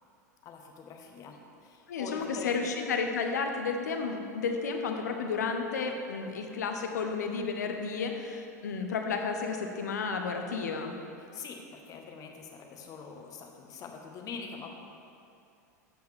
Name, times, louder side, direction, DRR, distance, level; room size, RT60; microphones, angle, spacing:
voice 1, 0.4-2.6 11.3-14.7, left 5 dB, 40° left, 3 dB, 1.5 m, -44 dB
voice 2, 1.9-10.9, left 5 dB, 75° left, 4 dB, 1.1 m, -32 dB
13.5 x 7.9 x 3.6 m, 2.5 s
figure-of-eight pair, 90°, 9 cm